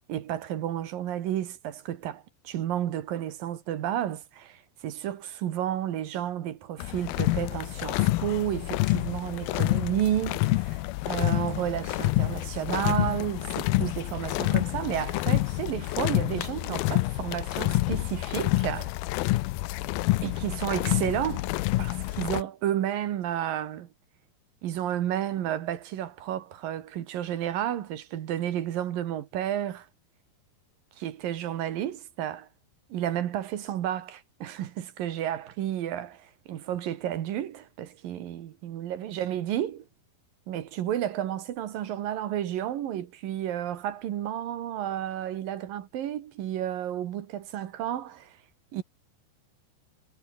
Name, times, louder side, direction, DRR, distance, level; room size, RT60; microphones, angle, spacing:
voice 1, 0.1-18.9 20.2-21.5 21.8-23.9 24.6-29.9 31.0-32.5 32.9-39.9 40.5-48.3 48.7-48.8, right 11 dB, 60° right, 2.8 m, -31 dB
sound 1, 6.8-22.4, left 19 dB, 90° left, 2.2 m, -28 dB
omnidirectional pair, 5.1 m